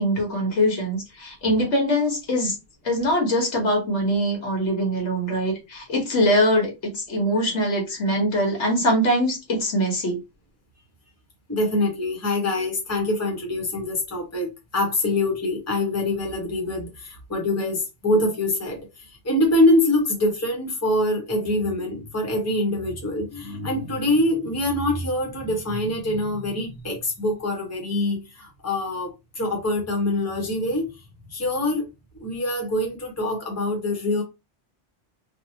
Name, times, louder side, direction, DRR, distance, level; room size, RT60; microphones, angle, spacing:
voice 1, 0.0-2.5 2.8-10.2, equal, 75° left, 1.5 m, -23 dB
voice 2, 11.5-30.9 31.3-31.9 32.1-34.2, left 1 dB, 15° left, 1.0 m, -24 dB
3.3 x 2.3 x 2.8 m
omnidirectional pair, 1.2 m